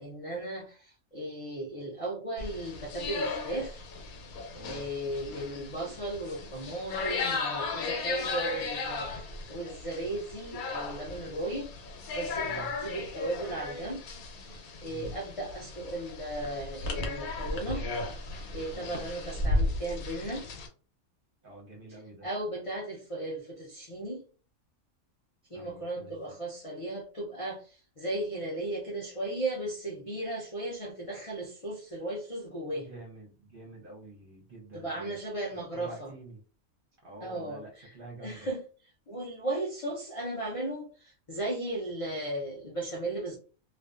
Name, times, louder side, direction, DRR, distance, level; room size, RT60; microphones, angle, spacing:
voice 1, 0.0-3.8 4.6-11.7 12.2-14.1 14.4-17.9 18.2-20.5 22.2-24.2 25.5-32.9 34.7-36.1 37.2-37.9 38.2-38.6 39.1-43.4, right 1 dB, 60° left, -3 dB, 0.3 m, -36 dB
sound 1, 2.4-20.7, left 3 dB, 85° left, 1.1 m, -35 dB
voice 2, 4.5-4.9 12.4-12.7 14.8-15.1 18.7-19.1 21.4-22.3 25.5-26.4 32.9-35.2 35.5-36.4 37.0-38.5, right 2 dB, 50° right, -1 dB, 0.7 m, -47 dB
2.5 x 2.2 x 2.4 m, 0.38 s
omnidirectional pair, 1.5 m